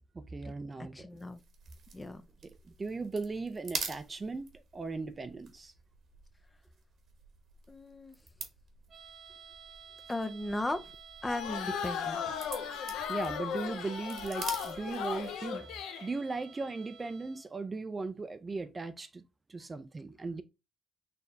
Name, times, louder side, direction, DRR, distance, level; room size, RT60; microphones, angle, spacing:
voice 1, 0.1-1.2 2.8-5.7 13.1-19.2 19.5-20.4, right 3 dB, 30° right, 0.5 m, -38 dB
voice 2, 0.9-1.4 1.9-2.2 7.7-8.2 10.1-10.9 11.2-12.4, left 2 dB, 20° left, 0.6 m, -36 dB
sound 1, 1.2-15.5, right 5 dB, 65° right, 1.2 m, -47 dB
sound 2, 8.9-17.6, right 7 dB, 45° right, 0.9 m, -53 dB
sound 3, 11.2-16.1, left 7 dB, 90° left, 0.5 m, -36 dB
4.5 x 2.7 x 3.4 m
cardioid pair, 90°, 0 cm